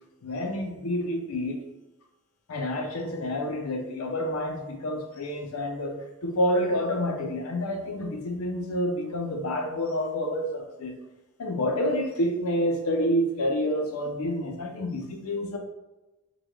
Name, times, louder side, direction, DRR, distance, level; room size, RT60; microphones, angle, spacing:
voice 1, 0.2-1.7 2.5-10.9 11.4-15.6, equal, 80° left, 3 dB, 0.5 m, -28 dB
3.5 x 2.2 x 3.1 m, 1.0 s
head